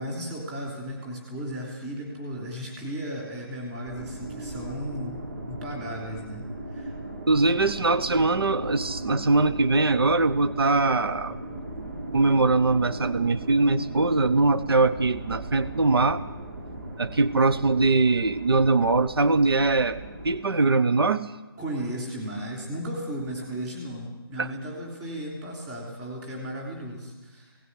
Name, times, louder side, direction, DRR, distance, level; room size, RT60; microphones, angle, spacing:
voice 1, 0.0-6.9 21.6-27.6, equal, 10° right, -1 dB, 3.2 m, -35 dB
sound 1, 3.8-20.4, right 1 dB, 35° right, 5.2 m, -37 dB
voice 2, 7.3-11.4 12.1-16.2 17.0-20.0 20.2-21.3 24.4-24.5, right 3 dB, 70° right, 12 dB, 1.1 m, -22 dB
17.5 x 17.0 x 9.7 m, 1.1 s
hypercardioid pair, 175°, 13 cm